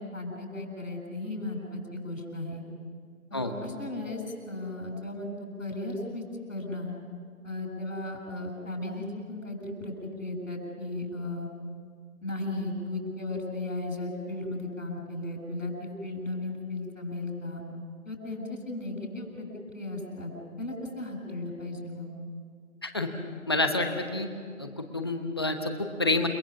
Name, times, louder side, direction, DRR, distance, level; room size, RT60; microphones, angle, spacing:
voice 1, 0.0-2.6 3.3-5.3 5.6-6.9 7.4-11.5 12.2-17.6 18.1-19.5 19.7-20.3 20.6-22.1, left 2 dB, 65° left, 2 dB, 7.8 m, -35 dB
voice 2, 23.5-24.3 24.6-26.3, left 2 dB, 20° left, 6 dB, 1.0 m, -28 dB
29.5 x 20.0 x 7.3 m, 2.1 s
figure-of-eight pair, 160°, 42 cm